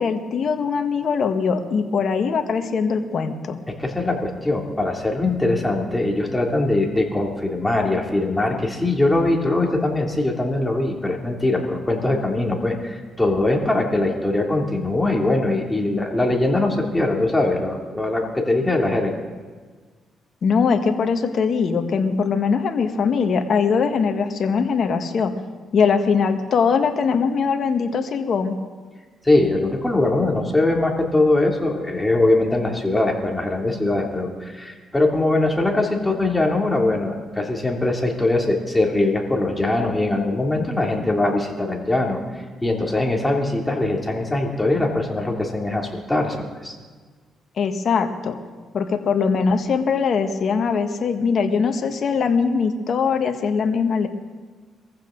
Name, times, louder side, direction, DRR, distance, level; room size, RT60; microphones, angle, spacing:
voice 1, 0.0-3.6 20.4-25.3 25.7-28.5 47.6-48.4 48.7-54.1, left 5 dB, 55° left, 5 dB, 1.5 m, -21 dB
voice 2, 3.7-19.1 29.2-42.2 42.6-46.4 46.6-46.7, left 2 dB, 10° left, 0 dB, 2.8 m, -21 dB
23.0 x 15.0 x 3.9 m, 1.5 s
cardioid pair, 90°, 0 cm